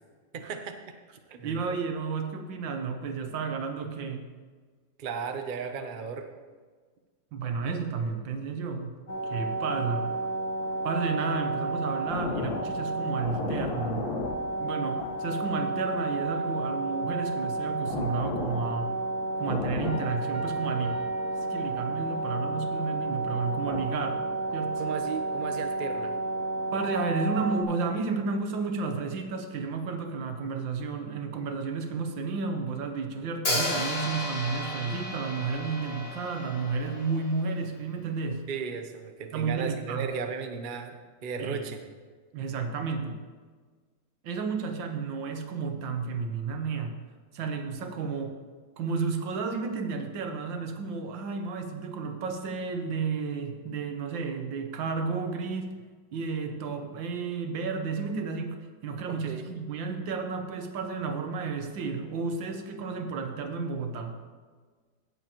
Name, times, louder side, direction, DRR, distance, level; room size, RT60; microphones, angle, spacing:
voice 1, 0.3-0.9 1.3-1.6 5.0-6.3 24.8-26.2 38.5-41.8 59.1-59.5, right 6 dB, 65° right, 6 dB, 0.5 m, -35 dB
voice 2, 1.4-4.3 7.3-8.9 9.3-10.1 10.8-14.1 14.5-18.9 19.4-21.0 21.5-24.2 24.5-24.8 26.7-38.4 39.3-40.1 41.4-41.7 42.3-43.2 44.2-46.9 47.3-48.4 48.8-55.7 56.1-64.2, right 4 dB, 80° right, 6 dB, 1.7 m, -32 dB
sound 1, 9.1-27.6, right 2 dB, 55° left, 1.7 m, -31 dB
Piano, 19.8-22.3, left 3 dB, 35° right, 2.7 m, -47 dB
Hi-hat, 33.4-37.4, left 1 dB, 35° left, 1.8 m, -33 dB
17.0 x 7.1 x 3.0 m, 1.5 s
omnidirectional pair, 2.0 m